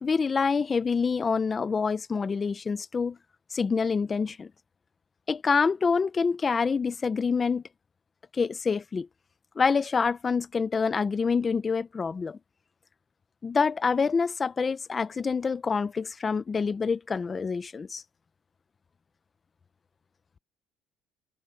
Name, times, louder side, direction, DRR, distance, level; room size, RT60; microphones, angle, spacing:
voice 1, 0.0-3.2 3.5-4.5 5.3-7.6 8.3-9.1 9.6-12.4 13.4-18.0, left 5 dB, 20° left, 0.7 m, -26 dB
cardioid pair, 160°, 0 cm